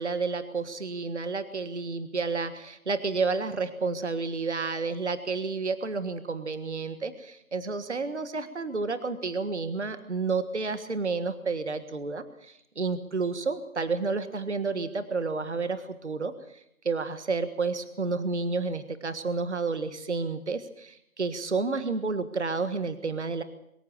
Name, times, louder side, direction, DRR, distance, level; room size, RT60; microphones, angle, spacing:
voice 1, 0.0-23.4, right 4 dB, 50° right, 11 dB, 1.6 m, -30 dB
23.5 x 14.5 x 8.6 m, 0.75 s
figure-of-eight pair, 175°, 43 cm